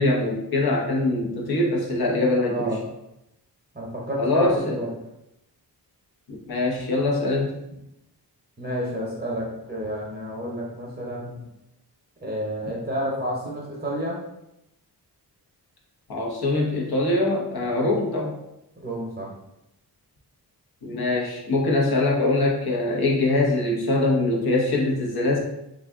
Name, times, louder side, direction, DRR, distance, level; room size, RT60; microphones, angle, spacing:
voice 1, 0.0-2.8 4.2-4.8 6.5-7.6 16.1-18.3 20.8-25.4, left 2 dB, 65° left, -2 dB, 0.9 m, -23 dB
voice 2, 2.4-2.8 3.7-4.9 8.6-11.4 12.2-14.2 17.7-17.9 18.8-19.3, equal, 25° right, -4 dB, 0.7 m, -30 dB
3.5 x 2.5 x 3.5 m, 0.86 s
wide cardioid pair, 140°, 40 cm